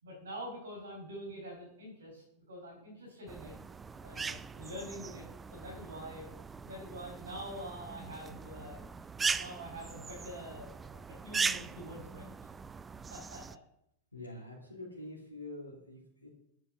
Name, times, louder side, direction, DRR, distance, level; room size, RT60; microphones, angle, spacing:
voice 1, 0.0-3.5 4.0-5.2 5.5-6.3 6.6-12.3 13.1-13.4 14.2-14.4, equal, 70° right, -4 dB, 5.2 m, -46 dB
sound 1, 3.3-13.6, right 5 dB, 15° right, 0.5 m, -39 dB
voice 2, 14.1-16.3, left 2 dB, 85° left, -2 dB, 2.5 m, -46 dB
11.0 x 8.3 x 6.9 m, 0.76 s
figure-of-eight pair, 90°, 0 cm